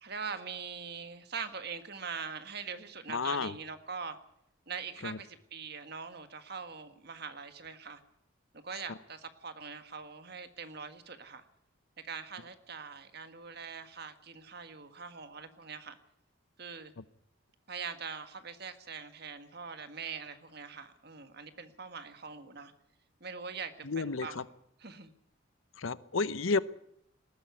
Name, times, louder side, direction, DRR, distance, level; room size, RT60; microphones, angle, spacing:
voice 1, 0.0-4.2 4.7-8.0 8.6-11.4 12.0-16.0 16.6-16.9 17.7-22.7 23.2-24.4 24.8-25.1, right 5 dB, 50° right, 9 dB, 1.7 m, -42 dB
voice 2, 3.1-3.5 5.0-5.2 23.8-24.4 25.8-26.6, left 4 dB, 80° left, 16 dB, 0.8 m, -31 dB
19.5 x 14.5 x 9.5 m, 0.74 s
head